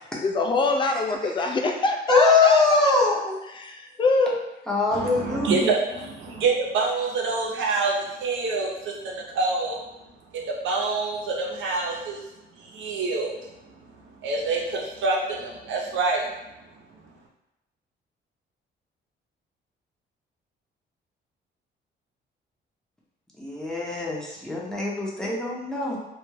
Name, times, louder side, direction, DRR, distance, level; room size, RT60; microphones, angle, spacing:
voice 1, 0.2-2.9 3.5-4.3, left 3 dB, 25° left, 3 dB, 0.4 m, -24 dB
voice 2, 2.1-3.4 4.7-5.7 23.4-26.0, left 3 dB, 5° left, -5 dB, 0.7 m, -22 dB
voice 3, 4.9-9.8 10.3-12.2 12.5-13.5 14.2-16.3, right 3 dB, 75° right, -1 dB, 0.6 m, -26 dB
2.3 x 2.0 x 3.1 m, 0.93 s
cardioid pair, 90°, 20 cm